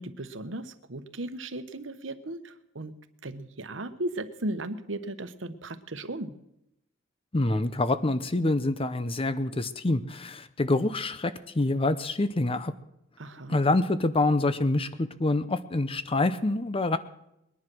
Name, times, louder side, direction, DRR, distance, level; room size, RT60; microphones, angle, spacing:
voice 1, 0.0-2.9 3.2-6.3 13.2-13.6, right 1 dB, 75° right, 10 dB, 1.1 m, -36 dB
voice 2, 7.3-12.7 13.5-17.0, left 2 dB, 30° left, 13 dB, 0.7 m, -26 dB
21.0 x 10.5 x 6.2 m, 0.83 s
head